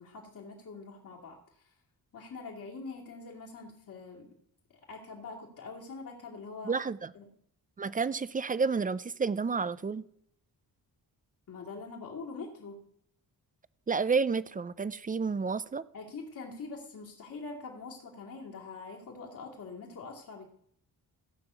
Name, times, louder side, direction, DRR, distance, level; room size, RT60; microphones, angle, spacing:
voice 1, 0.0-1.7 2.1-4.3 4.9-6.7 7.1-7.3 11.5-12.9 15.9-20.5, left 4 dB, 55° left, -2 dB, 2.5 m, -44 dB
voice 2, 6.6-7.1 7.8-10.0 13.9-15.8, right 5 dB, 20° right, 17 dB, 0.4 m, -30 dB
16.0 x 5.7 x 8.1 m, 0.69 s
wide cardioid pair, 150°, 38 cm